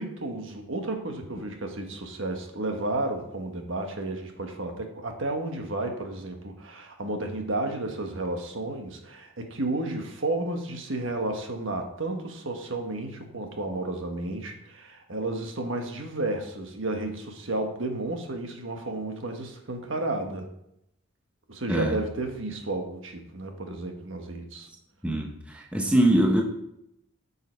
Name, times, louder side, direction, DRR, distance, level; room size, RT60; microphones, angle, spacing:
voice 1, 0.0-20.5 21.5-24.7, right 2 dB, 65° right, 4 dB, 1.4 m, -32 dB
voice 2, 25.0-26.4, right 1 dB, 5° right, 1 dB, 0.8 m, -23 dB
9.6 x 5.6 x 4.6 m, 0.79 s
head